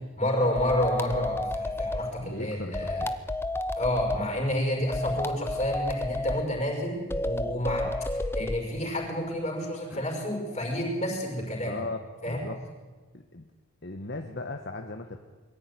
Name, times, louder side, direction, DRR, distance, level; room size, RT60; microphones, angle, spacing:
voice 1, 0.2-3.0 3.8-11.8 12.2-12.4, left 1 dB, 30° left, 0 dB, 5.6 m, -30 dB
sound 1, 0.6-2.1 2.7-4.2 4.9-6.4 7.1-8.6, left 1 dB, 10° left, 0.8 m, -31 dB
voice 2, 2.2-3.1 7.8-8.0 8.4-8.5 9.9-10.0 11.7-12.6 13.1-13.5 13.8-15.2, left 2 dB, 50° left, 5 dB, 1.2 m, -38 dB
22.0 x 14.5 x 9.6 m, 1.3 s
head